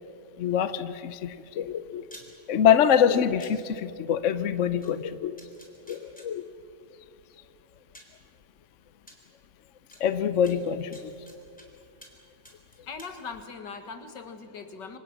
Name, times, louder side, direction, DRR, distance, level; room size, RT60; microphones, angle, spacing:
voice 1, 0.4-2.1 2.5-5.4 5.8-6.4 10.0-11.1, left 8 dB, 55° left, 12 dB, 0.9 m, -25 dB
sound 1, 2.1-2.3 3.4-3.5 4.8-4.9 5.4-6.3 7.3-7.4 7.9-8.2 9.1-9.2 9.9-10.0 10.4-11.7 12.0-12.2 12.4-13.1, equal, 5° left, 3.6 m, -49 dB
voice 2, 12.9-15.0, left 5 dB, 70° left, 7 dB, 2.4 m, -40 dB
29.0 x 25.0 x 6.0 m, 2.5 s
omnidirectional pair, 2.0 m